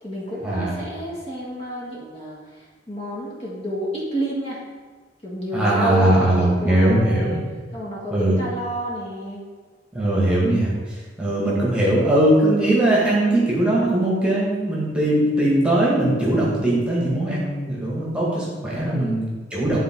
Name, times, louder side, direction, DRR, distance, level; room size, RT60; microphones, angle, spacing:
voice 1, 0.0-4.6 5.2-7.4 7.7-9.4 18.7-19.1 19.7-19.8, equal, 35° left, -5 dB, 1.9 m, -30 dB
voice 2, 5.5-7.4 8.1-8.4 9.9-19.8, right 1 dB, 5° right, -6 dB, 1.9 m, -20 dB
10.0 x 3.9 x 4.6 m, 1.4 s
head